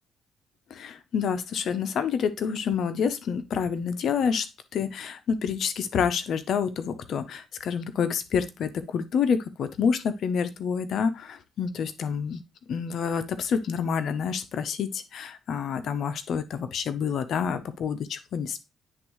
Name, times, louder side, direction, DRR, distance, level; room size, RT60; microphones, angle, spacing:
voice 1, 0.7-4.5 4.7-12.4 12.7-18.6, left 6 dB, 65° left, 11 dB, 0.7 m, -28 dB
9.8 x 3.5 x 3.0 m, 0.24 s
cardioid pair, 90°, 0 cm